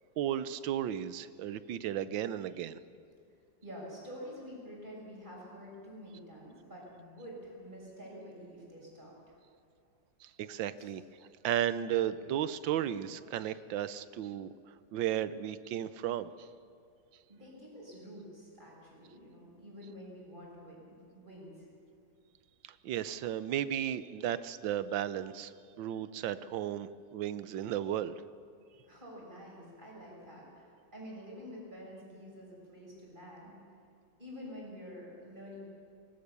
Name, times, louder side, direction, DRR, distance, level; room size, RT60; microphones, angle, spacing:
voice 1, 0.2-2.8 10.2-11.0 11.4-14.5 14.9-16.5 22.6-25.5 25.8-28.2, right 11 dB, 80° right, 14 dB, 1.5 m, -34 dB
voice 2, 3.6-9.3 10.7-10.9 17.3-21.7 28.8-33.6 34.2-35.6, equal, 25° right, -3 dB, 6.6 m, -48 dB
24.0 x 19.5 x 6.9 m, 2.4 s
omnidirectional pair, 2.0 m